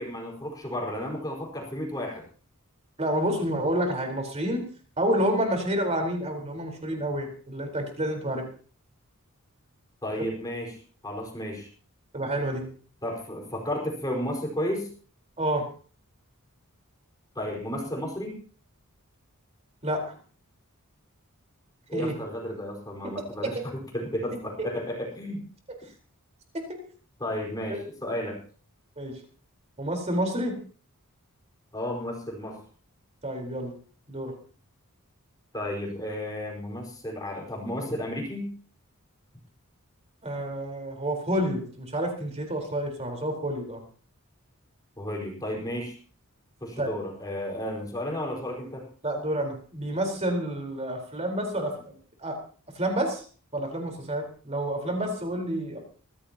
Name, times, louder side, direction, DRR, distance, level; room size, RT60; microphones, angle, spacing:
voice 1, 0.0-2.2 10.0-11.7 13.0-14.9 17.3-18.4 21.9-23.6 23.9-25.4 27.2-28.4 31.7-32.6 35.5-38.5 45.0-46.0 46.6-48.9, left 1 dB, 15° left, -1 dB, 4.7 m, -33 dB
voice 2, 3.0-4.6 5.0-8.4 12.1-12.6 15.4-15.6 19.8-20.1 21.9-22.1 23.4-23.5 29.0-29.2 29.8-30.5 33.2-33.7 34.1-34.3 40.2-43.8 46.8-46.9 49.0-52.3 52.7-53.2 53.5-55.8, right 1 dB, 30° right, 2 dB, 4.3 m, -29 dB
23.5 x 15.5 x 2.9 m, 0.41 s
head